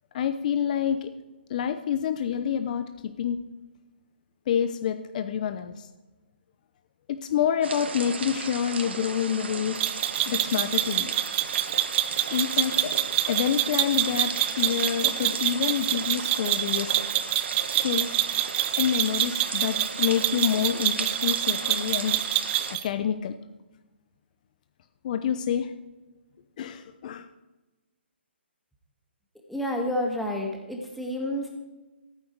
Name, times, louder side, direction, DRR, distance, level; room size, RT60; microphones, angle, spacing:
voice 1, 0.1-1.1 1.5-3.4 4.5-5.9 7.1-9.8 10.3-11.1 12.3-12.9 13.3-17.0 17.8-18.1 18.6-22.4 22.8-23.3 25.0-25.7 26.6-27.3, left 8 dB, 40° left, 9 dB, 0.7 m, -27 dB
sound 1, 7.6-22.8, right 5 dB, 65° right, 1.4 m, -36 dB
sound 2, 9.8-22.9, right 14 dB, 20° right, 0.6 m, -26 dB
voice 2, 29.5-31.5, left 1 dB, ahead, -1 dB, 1.8 m, -29 dB
15.0 x 9.4 x 4.7 m, 1.1 s
hypercardioid pair, 145°, 6 cm